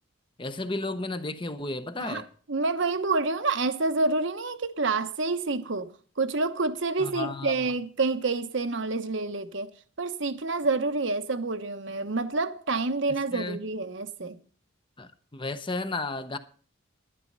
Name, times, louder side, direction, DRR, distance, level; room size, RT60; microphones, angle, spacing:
voice 1, 0.4-2.3 7.0-7.7 13.1-13.6 15.0-16.4, left 2 dB, 25° left, 0.7 m, -33 dB
voice 2, 2.5-9.7 10.0-14.4, right 3 dB, 60° right, 1.0 m, -28 dB
11.0 x 11.0 x 5.4 m
head